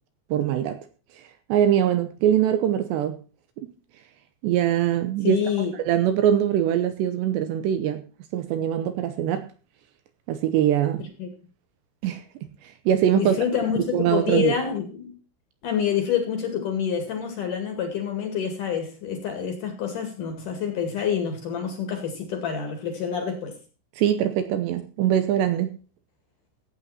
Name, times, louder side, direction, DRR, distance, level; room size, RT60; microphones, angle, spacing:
voice 1, 0.3-0.8 1.2-3.1 3.6-3.7 4.4-5.4 5.8-8.0 8.3-9.5 10.3-11.1 12.0-12.2 12.6-13.4 13.9-14.6 24.0-25.8, right 10 dB, 75° right, 2.8 m, -22 dB
voice 2, 5.2-5.7 11.2-11.3 13.1-15.1 15.6-23.5, left 8 dB, 50° left, 3.1 m, -27 dB
14.5 x 8.7 x 4.3 m
omnidirectional pair, 5.6 m